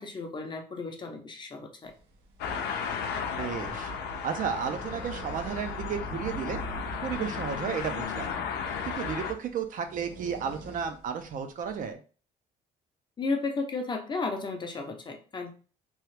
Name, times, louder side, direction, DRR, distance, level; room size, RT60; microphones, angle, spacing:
voice 1, 0.0-1.9 13.2-15.5, left 3 dB, 25° left, 3 dB, 0.7 m, -34 dB
sound 1, 1.8-11.9, right 3 dB, 85° right, 1.0 m, -51 dB
sound 2, 2.4-9.3, left 5 dB, 75° left, 0.6 m, -34 dB
voice 2, 3.4-3.9 4.2-6.6 7.0-8.3 8.8-12.0, right 7 dB, 50° right, 6 dB, 0.6 m, -33 dB
3.0 x 2.3 x 3.3 m, 0.37 s
cardioid pair, 110°, 17 cm